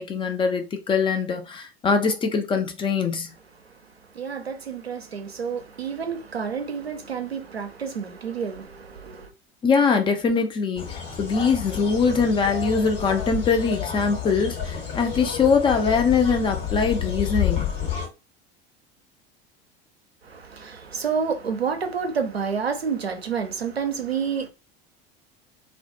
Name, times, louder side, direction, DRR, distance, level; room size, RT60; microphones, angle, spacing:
voice 1, 0.0-3.3 9.6-17.7, left 5 dB, 15° left, 0.3 m, -22 dB
voice 2, 3.6-9.3 20.2-24.5, right 6 dB, 90° right, 0.5 m, -29 dB
sound 1, 10.8-18.1, left 8 dB, 70° left, 1.1 m, -30 dB
2.2 x 2.2 x 2.6 m
figure-of-eight pair, 75°, 30 cm